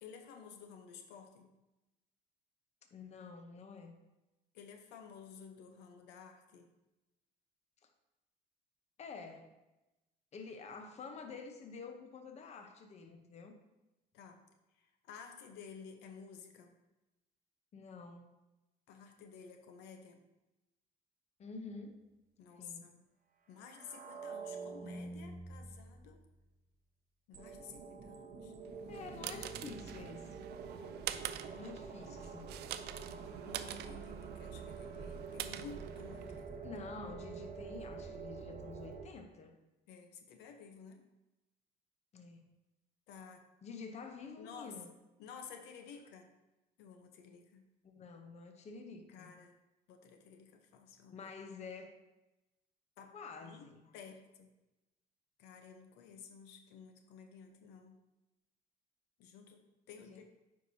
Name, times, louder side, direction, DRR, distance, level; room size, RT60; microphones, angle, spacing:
voice 1, 0.0-1.5 4.5-6.7 14.1-14.4 15.1-16.7 18.9-20.2 22.4-23.0 23.5-26.2 27.3-28.5 33.4-36.7 39.9-41.0 43.1-43.4 44.4-44.7 45.2-46.3 46.8-47.6 49.1-49.5 49.9-51.3 53.0-53.1 53.4-53.7 53.9-54.5 55.4-58.0 59.2-60.2, left 6 dB, 90° left, 5 dB, 0.7 m, -53 dB
voice 2, 2.9-4.0 9.0-9.5 10.3-13.6 17.7-18.3 21.4-22.0 22.6-22.9 28.9-30.5 31.5-32.6 36.4-39.5 42.1-42.5 43.6-44.9 47.8-49.3 51.1-52.0 53.1-53.9 60.0-60.2, left 4 dB, 40° left, 6 dB, 0.8 m, -49 dB
sound 1, 23.6-26.3 27.3-39.0, right 4 dB, 55° right, 1.0 m, -47 dB
sound 2, 28.7-36.5, right 11 dB, 75° right, 0.4 m, -45 dB
9.0 x 4.7 x 2.7 m, 1.0 s
cardioid pair, 110°, 17 cm